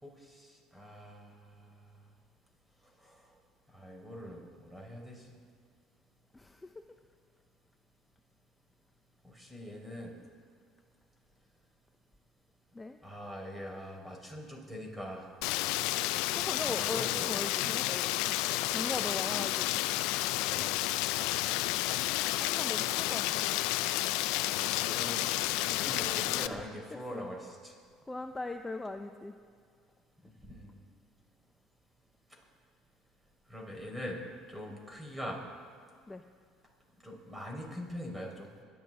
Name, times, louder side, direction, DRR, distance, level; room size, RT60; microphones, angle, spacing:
voice 1, 0.0-2.0 3.0-3.3 3.7-5.3 9.2-10.2 13.0-15.2 15.5-15.6 16.6-17.4 20.4-20.9 24.6-25.3 25.6-27.7 30.2-30.9 33.5-35.4 37.0-38.5, equal, 10° right, -1 dB, 4.8 m, -43 dB
voice 2, 6.3-6.7 12.7-13.0 16.3-18.3 18.7-19.8 22.4-23.5 25.4-25.9 26.5-26.6 27.1-27.3 28.1-29.4 36.1-36.2, left 2 dB, 15° left, 6 dB, 0.6 m, -40 dB
Rain, 15.4-26.5, left 16 dB, 75° left, 0.4 m, -31 dB
28.5 x 11.5 x 3.8 m, 2.1 s
supercardioid pair, 80°, 0 cm